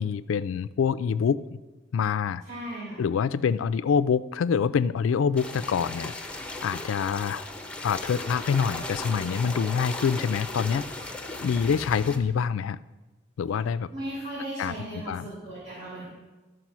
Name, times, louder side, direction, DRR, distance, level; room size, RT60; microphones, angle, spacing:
voice 1, 0.0-1.6 1.9-2.4 3.0-6.1 6.6-7.4 7.8-10.8 11.4-12.8 13.4-13.9 14.6-15.3, left 6 dB, 80° left, 16 dB, 0.3 m, -26 dB
voice 2, 2.4-3.0 13.9-16.1, right 1 dB, 40° right, -8 dB, 3.4 m, -36 dB
sound 1, 5.4-12.2, left 2 dB, 5° left, 0.8 m, -37 dB
13.0 x 4.9 x 6.0 m, 1.2 s
head